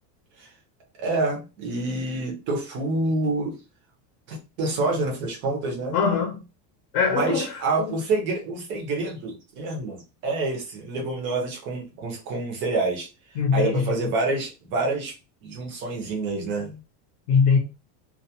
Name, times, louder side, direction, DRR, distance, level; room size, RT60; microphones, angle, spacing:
voice 1, 1.0-3.6 4.3-6.0 7.1-13.1 13.5-15.1 15.4-16.8, right 2 dB, 25° right, 0.4 m, -27 dB
voice 2, 5.9-6.4 6.9-7.5 7.8-7.9 13.4-14.0 17.3-17.6, left 5 dB, 50° left, 0.7 m, -22 dB
2.2 x 2.2 x 2.7 m
cardioid pair, 175°, 49 cm